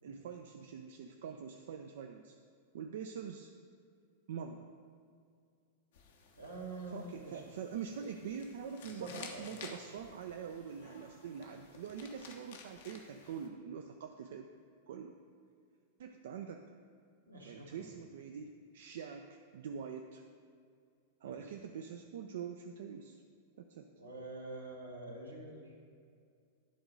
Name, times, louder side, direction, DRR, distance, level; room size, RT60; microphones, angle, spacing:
voice 1, 0.0-2.3 2.7-3.5 4.3-4.7 6.9-14.5 14.9-15.2 16.0-16.7 17.4-20.2 21.2-23.2 23.6-23.9, right 7 dB, 55° right, 5 dB, 0.3 m, -44 dB
sound 1, 5.9-13.5, left 5 dB, 55° left, 0.8 m, -54 dB
voice 2, 6.3-7.4 8.9-9.5 17.2-17.9 21.2-21.4 24.0-25.7, right 2 dB, 80° right, -2 dB, 1.4 m, -46 dB
10.5 x 3.8 x 5.1 m, 2.3 s
figure-of-eight pair, 95°, 0 cm